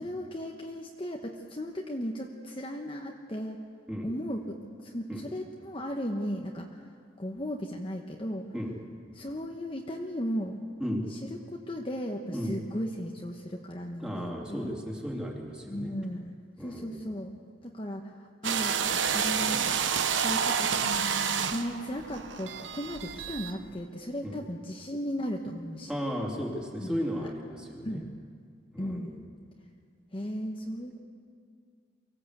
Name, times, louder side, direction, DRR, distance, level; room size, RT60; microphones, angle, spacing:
voice 1, 0.0-3.6 4.0-6.8 7.2-8.5 9.1-10.7 11.1-14.7 15.7-16.3 16.6-17.3 17.6-18.9 19.1-19.7 20.2-20.7 21.5-25.9 26.8-27.3 27.8-28.2 28.8-29.2 30.1-31.0, equal, 30° left, 1 dB, 1.1 m, -36 dB
voice 2, 14.0-15.9 16.6-17.1 24.2-24.4 25.9-28.0 28.7-29.2, equal, 5° right, -1 dB, 2.9 m, -35 dB
sound 1, 18.4-23.6, right 7 dB, 85° right, 1.0 m, -29 dB
24.0 x 16.0 x 8.2 m, 2.2 s
head